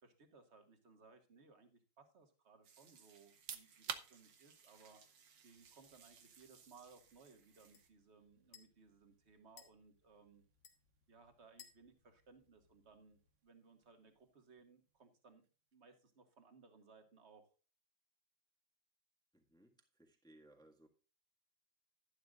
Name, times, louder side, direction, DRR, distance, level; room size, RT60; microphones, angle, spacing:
voice 1, 0.0-10.4 11.1-15.4 15.7-17.5, right 4 dB, 35° right, 6 dB, 2.0 m, -64 dB
sound 1, 2.6-7.9, right 6 dB, 70° right, 2.1 m, -66 dB
sound 2, 3.2-15.9, right 8 dB, 50° right, 1.0 m, -56 dB
sound 3, 5.5-13.3, left 8 dB, 90° left, 2.3 m, -68 dB
voice 2, 19.3-20.9, right 1 dB, ahead, 2 dB, 1.5 m, -65 dB
11.5 x 11.5 x 2.4 m, 0.34 s
omnidirectional pair, 2.0 m